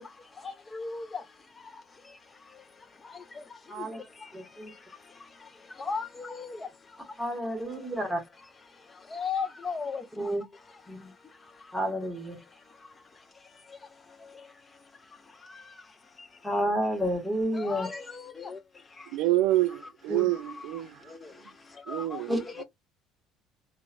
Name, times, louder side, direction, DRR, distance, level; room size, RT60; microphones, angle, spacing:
voice 1, 0.7-1.0 5.9-6.5 9.1-10.0 17.6-18.0 21.9-22.2 22.6-22.7, left 5 dB, 20° left, 0.3 m, -33 dB
voice 2, 3.7-4.0 4.3-4.7 7.2-8.2 10.2-10.4 10.9-11.1 11.7-12.4 16.4-17.9 20.1-20.3 22.3-22.4, equal, 5° right, 1.0 m, -30 dB
voice 3, 19.1-21.0 21.9-22.3, right 15 dB, 85° right, 0.4 m, -27 dB
3.0 x 2.1 x 2.5 m
cardioid pair, 140°, 0 cm